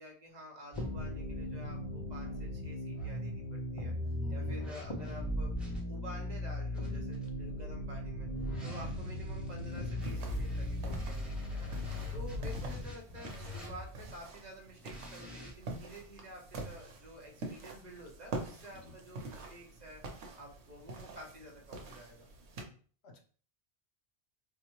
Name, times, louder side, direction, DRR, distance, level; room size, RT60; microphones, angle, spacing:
voice 1, 0.0-3.9 4.3-8.3 8.6-11.8 12.1-20.0 20.4-22.3 22.5-22.8, equal, 45° right, 0 dB, 0.7 m, -50 dB
sound 1, 0.7-5.8 6.7-14.1 14.8-15.5, equal, ahead, 0.6 m, -42 dB
sound 2, 0.8-12.8, left 2 dB, 40° left, 0.4 m, -39 dB
voice 2, 4.2-4.5 7.9-8.0 8.6-8.9 11.7-12.1 18.7-18.9 23.0-23.2, left 4 dB, 75° left, 3 dB, 1.0 m, -51 dB
sound 3, 10.0-22.6, right 3 dB, 90° right, 1.0 m, -46 dB
4.5 x 2.1 x 2.9 m, 0.42 s
omnidirectional pair, 1.1 m